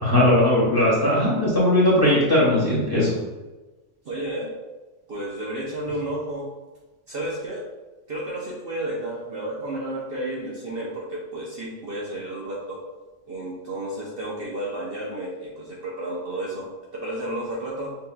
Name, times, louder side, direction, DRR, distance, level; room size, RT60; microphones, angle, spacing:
voice 1, 0.0-3.2, left 1 dB, 20° left, -7 dB, 1.4 m, -19 dB
voice 2, 4.0-4.5 5.1-6.5 7.1-7.6 8.1-12.8 13.3-18.0, right 1 dB, 55° right, -4 dB, 0.8 m, -32 dB
5.7 x 2.9 x 2.2 m, 1.2 s
omnidirectional pair, 1.3 m